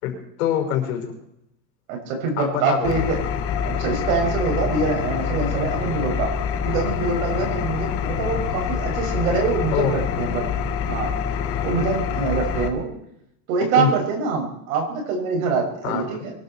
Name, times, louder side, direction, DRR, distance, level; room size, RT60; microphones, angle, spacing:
voice 1, 0.0-1.1 2.4-3.0 9.7-9.9 13.8-13.9 15.8-16.3, left 10 dB, 60° left, 3 dB, 5.7 m, -25 dB
voice 2, 1.9-3.2 3.6-6.3 6.6-10.5 10.9-11.1 11.6-12.9 13.5-16.3, right 4 dB, 55° right, 2 dB, 6.2 m, -24 dB
Engine, 2.8-12.7, left 8 dB, 30° left, 1.3 m, -26 dB
24.0 x 12.5 x 4.4 m, 0.78 s
supercardioid pair, 175°, 48 cm